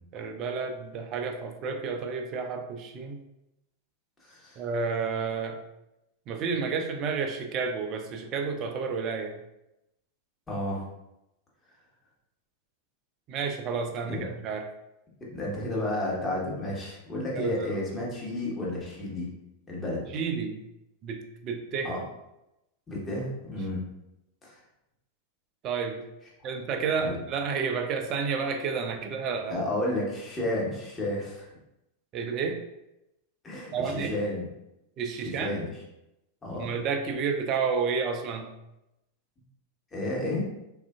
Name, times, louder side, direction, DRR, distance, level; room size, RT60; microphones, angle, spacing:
voice 1, 0.1-3.2 4.6-5.6 6.3-9.4 13.3-14.7 17.3-17.8 20.1-20.6 21.0-21.9 25.6-26.0 26.4-29.6 32.1-32.6 33.7-34.2 35.0-35.6 36.6-38.5, right 5 dB, 35° right, 4 dB, 0.4 m, -31 dB
voice 2, 4.2-4.6 10.5-10.8 14.1-14.2 15.3-19.3 19.7-20.0 21.8-22.0 22.9-23.9 24.4-24.6 27.0-27.2 29.5-31.5 33.4-34.4 35.2-35.7 36.4-36.8 39.9-40.4, left 1 dB, 15° left, -4 dB, 1.0 m, -31 dB
3.4 x 2.4 x 2.3 m, 0.89 s
figure-of-eight pair, 90°, 0 cm